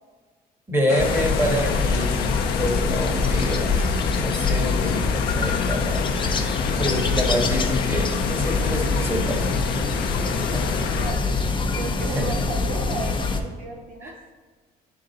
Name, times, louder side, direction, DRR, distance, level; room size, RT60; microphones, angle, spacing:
voice 1, 0.7-9.5 12.1-12.5 14.0-14.1, equal, 15° right, 0 dB, 1.4 m, -27 dB
sound 1, 0.9-11.1, left 8 dB, 75° left, 0.5 m, -30 dB
sound 2, 1.0-13.4, left 3 dB, 30° left, 0.7 m, -24 dB
voice 2, 10.3-11.4 11.7-14.2, right 2 dB, 60° right, 1 dB, 1.0 m, -35 dB
9.6 x 3.8 x 4.1 m, 1.4 s
cardioid pair, 110°, 17 cm